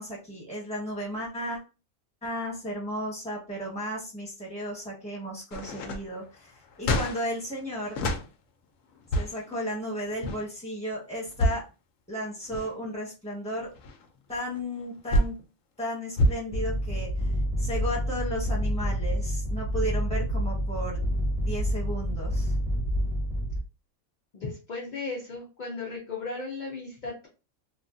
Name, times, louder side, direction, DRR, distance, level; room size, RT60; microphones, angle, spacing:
voice 1, 0.0-1.6 2.2-8.0 9.1-11.6 12.1-13.7 14.3-15.3 15.8-17.3 17.6-21.0 21.4-22.5, equal, 5° left, -4 dB, 1.3 m, -34 dB
sound 1, 5.5-8.3 8.9-9.5 10.1-10.4 11.2-11.7 12.3-12.9 13.4-15.4 16.2-16.3, equal, 70° left, 1.0 m, -28 dB
sound 2, 16.5-23.6, equal, 40° right, 0.5 m, -28 dB
voice 2, 24.3-27.3, left 3 dB, 50° left, -2 dB, 0.6 m, -36 dB
3.0 x 2.4 x 2.5 m, 0.31 s
omnidirectional pair, 1.5 m